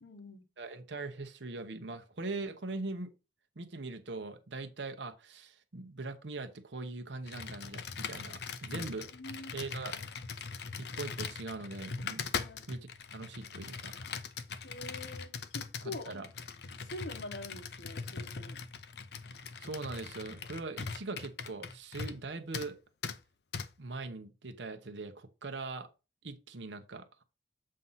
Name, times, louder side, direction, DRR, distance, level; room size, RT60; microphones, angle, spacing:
voice 1, 0.0-0.4 8.7-8.9 9.1-9.5 12.4-12.6 14.6-16.1 16.7-18.6, left 2 dB, 80° left, 1.2 m, -45 dB
voice 2, 0.6-3.1 3.6-9.1 9.5-10.0 10.8-12.2 12.7-14.0 15.8-16.3 19.6-22.8 23.8-25.9 26.2-27.2, right 3 dB, 80° right, 0.9 m, -41 dB
Computer keyboard, 7.3-22.3 22.5-22.7 23.0-23.2 23.5-23.7, left 5 dB, 65° left, 0.6 m, -41 dB
7.5 x 2.7 x 5.5 m
head